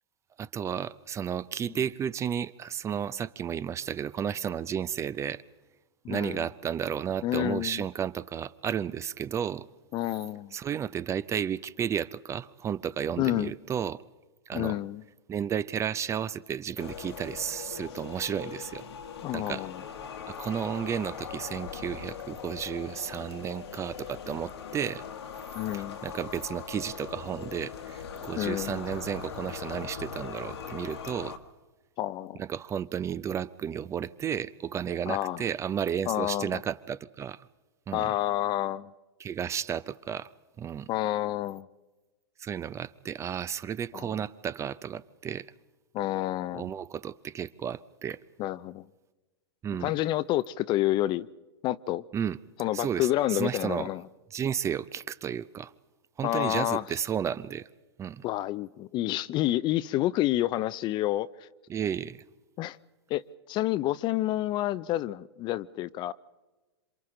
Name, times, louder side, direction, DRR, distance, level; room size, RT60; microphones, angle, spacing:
voice 1, 0.4-5.4 6.1-9.7 10.5-14.0 14.5-14.8 15.3-18.8 19.3-19.7 20.3-25.0 25.7-31.4 32.4-37.4 37.9-38.1 39.2-40.3 40.6-40.9 42.4-45.5 46.5-48.2 49.6-49.9 52.1-52.4 52.7-53.9 54.3-55.7 56.2-57.7 58.0-58.2 61.7-62.2, right 8 dB, 20° right, 0.5 m, -33 dB
voice 2, 6.0-6.5 7.2-7.8 9.9-10.5 13.2-13.5 14.5-15.0 19.2-19.8 25.5-26.0 28.4-28.8 32.0-32.4 35.1-35.4 36.1-36.6 37.9-38.9 40.9-41.7 43.9-44.1 45.9-46.7 48.4-48.9 49.8-51.3 51.6-52.0 52.6-54.0 56.2-56.8 58.2-61.3 62.6-62.8 63.1-63.2 63.5-66.1, left 15 dB, 35° left, 0.6 m, -29 dB
sound 1, 16.8-31.4, left 7 dB, 75° left, 1.7 m, -40 dB
27.5 x 26.0 x 3.8 m
hypercardioid pair, 115°, 14 cm